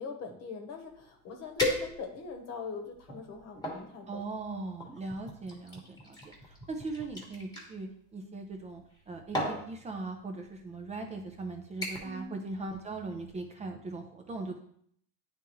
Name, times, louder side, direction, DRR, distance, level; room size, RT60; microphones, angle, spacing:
voice 1, 0.0-4.2 12.0-12.4, left 4 dB, 45° left, 5 dB, 1.1 m, -42 dB
sound 1, 0.9-1.0 1.6-2.3 3.0-3.8 4.8-7.7 8.8-9.0 9.3-9.6 10.5-10.7 11.1-11.4 11.8-12.2 12.5-12.9 13.3-13.4, left 1 dB, 10° left, 1.2 m, -36 dB
voice 2, 4.1-6.2 6.4-14.6, right 3 dB, 20° right, 4 dB, 0.5 m, -39 dB
9.7 x 3.6 x 3.0 m, 0.65 s
cardioid pair, 155°, 36 cm